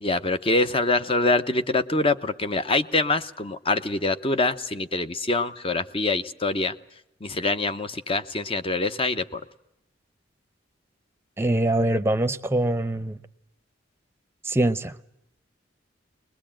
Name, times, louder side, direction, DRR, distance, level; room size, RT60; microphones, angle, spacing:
voice 1, 0.0-6.7 7.2-9.4, left 2 dB, 30° left, 0.9 m, -25 dB
voice 2, 11.4-13.2 14.4-15.0, right 1 dB, 15° right, 0.8 m, -23 dB
22.0 x 21.0 x 8.9 m
head